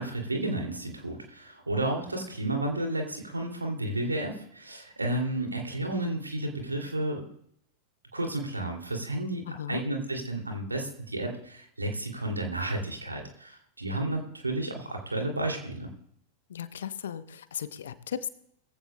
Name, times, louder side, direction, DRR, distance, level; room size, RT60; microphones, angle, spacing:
voice 1, 0.0-7.2 8.1-15.9, right 1 dB, 80° right, 3 dB, 2.5 m, -32 dB
voice 2, 9.5-9.8 16.5-18.3, left 9 dB, 65° left, 14 dB, 0.8 m, -36 dB
21.5 x 15.0 x 2.2 m, 0.70 s
figure-of-eight pair, 90°, 0 cm